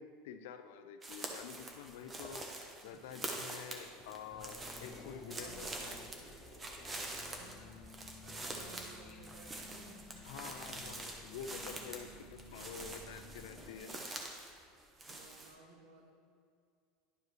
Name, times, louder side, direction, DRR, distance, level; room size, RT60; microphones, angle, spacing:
voice 1, 0.0-2.5 2.8-6.0 10.2-14.1, left 7 dB, 80° left, 10 dB, 0.4 m, -48 dB
sound 1, 1.0-14.5 14.8-15.5, right 2 dB, 20° right, 0.8 m, -45 dB
sound 2, 1.6-8.9 9.5-14.8, left 3 dB, 40° left, 1.0 m, -59 dB
sound 3, 4.3-13.8, left 3 dB, 25° left, 0.6 m, -55 dB
voice 2, 5.3-6.0 7.2-10.2 15.1-16.2, right 4 dB, 80° right, 2 dB, 1.2 m, -58 dB
10.5 x 4.8 x 3.2 m, 2.2 s
supercardioid pair, 140°, 0 cm